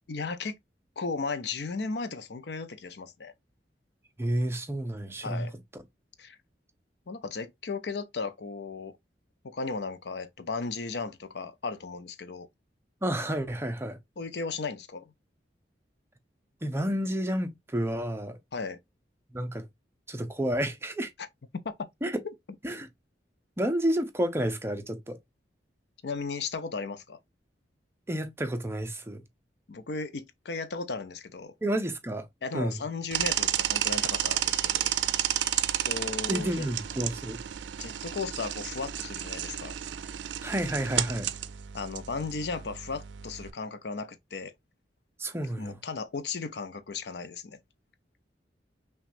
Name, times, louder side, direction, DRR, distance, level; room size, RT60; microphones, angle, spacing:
voice 1, 0.1-0.6 1.0-3.3 5.2-5.5 6.2-6.4 7.1-8.9 9.4-12.5 14.2-15.1 18.5-18.8 21.6-21.7 26.0-27.2 29.7-31.5 32.4-35.0 35.8-36.7 37.8-39.8 41.7-44.5 45.6-47.6, left 4 dB, 65° left, 0.6 m, -35 dB
voice 2, 4.2-5.5 5.7-5.8 13.0-14.0 16.6-18.4 19.3-19.7 20.1-21.1 22.0-22.2 22.6-22.9 23.6-25.2 28.1-29.2 31.6-32.3 32.5-32.8 36.3-37.4 40.4-41.3 45.2-45.8, right 1 dB, 15° right, 0.6 m, -30 dB
sound 1, 33.1-43.5, right 11 dB, 90° right, 0.4 m, -31 dB
5.8 x 2.3 x 2.5 m
head